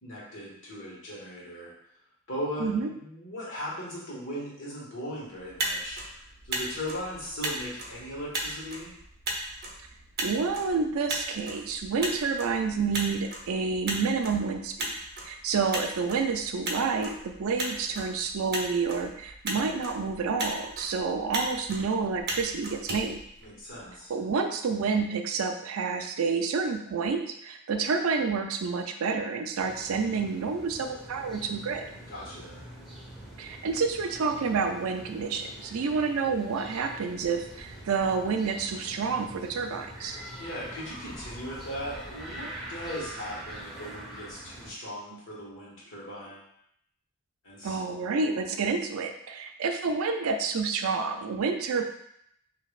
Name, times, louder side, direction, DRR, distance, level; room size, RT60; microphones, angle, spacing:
voice 1, 0.0-1.7 2.3-8.9 23.4-24.1 32.1-32.7 40.4-46.5 47.4-47.8, equal, 65° left, -6 dB, 1.5 m, -38 dB
Motor vehicle (road), 5.4-23.9, right 1 dB, 45° right, 0.7 m, -37 dB
voice 2, 10.2-14.9 15.2-23.2 24.1-31.8 33.4-40.2 45.1-45.2 47.6-51.8, right 5 dB, 75° right, 5 dB, 0.4 m, -29 dB
sound 1, 29.6-44.7, right 1 dB, ahead, 1.0 m, -44 dB
5.2 x 2.8 x 2.4 m, 0.73 s
head